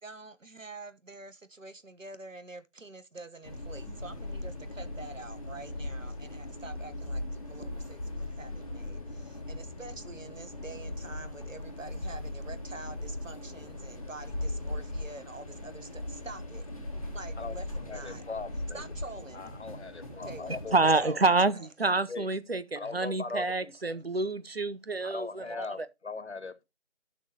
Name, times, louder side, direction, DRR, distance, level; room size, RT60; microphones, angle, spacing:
voice 1, 0.0-16.6 16.9-18.2 18.7-19.4 20.3-21.2, right 3 dB, 85° right, 1.2 m, -46 dB
sound 1, 3.4-21.0, left 1 dB, 30° left, 1.5 m, -39 dB
voice 2, 17.9-18.8 19.3-21.1 22.1-22.3 22.7-23.7 25.0-26.6, left 4 dB, 60° left, 1.0 m, -40 dB
voice 3, 20.7-25.7, right 3 dB, 55° right, 0.6 m, -27 dB
12.0 x 6.5 x 2.8 m
figure-of-eight pair, 160°, 37 cm